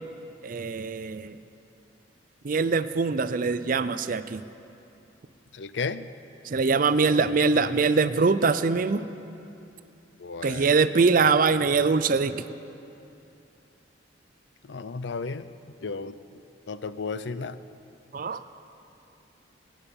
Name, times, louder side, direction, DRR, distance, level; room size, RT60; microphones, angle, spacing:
voice 1, 0.4-1.4 2.4-4.4 6.5-9.0 10.4-12.4 18.1-18.4, right 4 dB, 45° right, 13 dB, 0.5 m, -23 dB
voice 2, 5.5-6.1 10.2-10.7 14.7-15.5 15.8-16.2 16.7-17.6, left 4 dB, 65° left, 14 dB, 0.5 m, -33 dB
24.5 x 8.8 x 5.3 m, 2.7 s
head